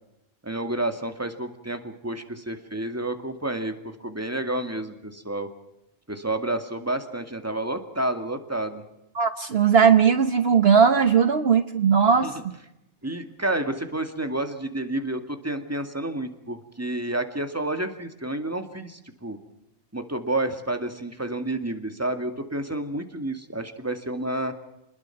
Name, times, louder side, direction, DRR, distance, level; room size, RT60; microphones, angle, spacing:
voice 1, 0.4-5.5 6.1-8.8 12.2-12.3 13.0-19.4 19.9-24.5, right 1 dB, 10° right, 7 dB, 2.2 m, -30 dB
voice 2, 9.2-12.3, right 6 dB, 60° right, 10 dB, 1.2 m, -18 dB
28.5 x 20.5 x 6.0 m, 0.86 s
omnidirectional pair, 1.2 m